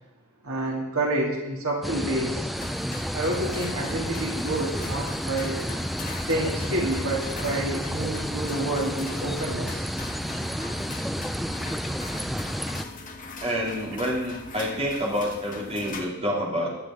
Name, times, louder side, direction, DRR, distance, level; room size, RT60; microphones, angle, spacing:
voice 1, 0.4-2.5 3.1-5.6 6.3-9.9, right 1 dB, 70° right, -2 dB, 2.9 m, -28 dB
sound 1, 1.8-12.9, equal, ahead, 0.4 m, -31 dB
sound 2, 2.6-16.0, left 3 dB, 40° left, 1.4 m, -41 dB
voice 2, 13.4-16.8, equal, 30° right, -3 dB, 3.1 m, -28 dB
16.5 x 12.0 x 3.8 m, 0.98 s
head